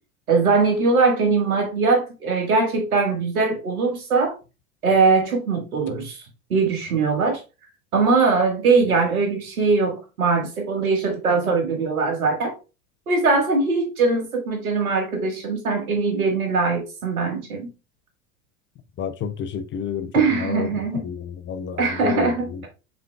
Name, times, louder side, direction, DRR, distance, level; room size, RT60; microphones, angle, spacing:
voice 1, 0.3-4.3 4.8-6.2 6.5-7.4 7.9-12.5 13.1-17.7 20.1-21.0 21.8-22.7, right 4 dB, 85° right, 1.7 m, -21 dB
voice 2, 19.0-22.7, left 7 dB, 30° left, 0.6 m, -30 dB
5.8 x 3.7 x 2.3 m
hypercardioid pair, 85°, 42 cm